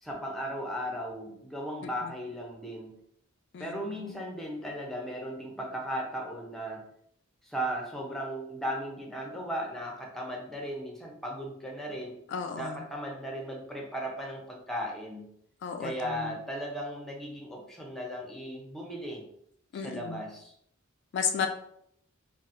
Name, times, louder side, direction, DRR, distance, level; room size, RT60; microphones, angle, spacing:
voice 1, 0.0-3.0 3.6-6.8 7.4-12.2 12.6-15.3 15.8-19.2 19.8-20.5, equal, ahead, 0 dB, 0.6 m, -36 dB
voice 2, 3.5-4.0 12.3-12.8 15.6-16.4 19.7-20.2 21.1-21.5, left 6 dB, 60° left, 5 dB, 0.3 m, -33 dB
4.0 x 2.0 x 2.5 m, 0.70 s
head